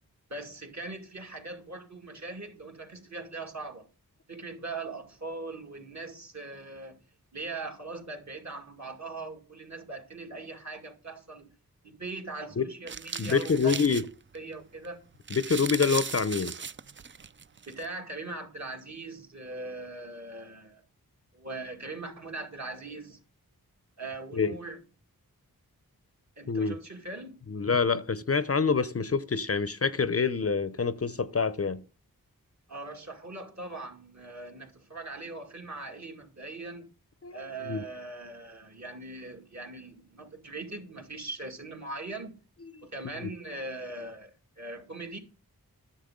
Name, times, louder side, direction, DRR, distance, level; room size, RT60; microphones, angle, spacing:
voice 1, 0.3-3.9 4.3-7.0 7.3-11.5 11.8-14.0 14.3-15.0 17.7-20.8 21.3-23.2 24.0-24.8 26.4-27.4 32.7-36.9 37.3-42.4 42.8-45.2, right 2 dB, 50° right, 2.3 m, -40 dB
sound 1, 12.9-14.5 14.8-14.9 15.1-17.8, right 6 dB, 35° right, 0.4 m, -37 dB
voice 2, 13.2-14.0 15.3-16.5 24.3-24.6 26.5-26.8 27.5-31.8 37.2-37.8 42.8-42.9 43.2-43.3, left 5 dB, 40° left, 0.6 m, -27 dB
10.5 x 7.4 x 3.6 m
cardioid pair, 45°, 37 cm